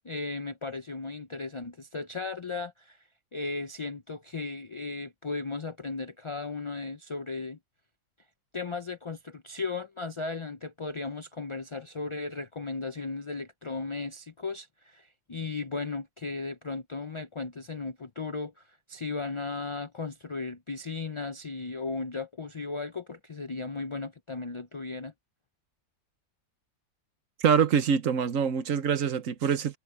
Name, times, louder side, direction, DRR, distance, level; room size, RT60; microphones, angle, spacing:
voice 1, 0.0-3.0 3.3-7.6 8.5-25.1, left 3 dB, 50° left, 0.3 m, -36 dB
voice 2, 27.4-29.8, right 7 dB, 65° right, 1.3 m, -25 dB
omnidirectional pair, 1.5 m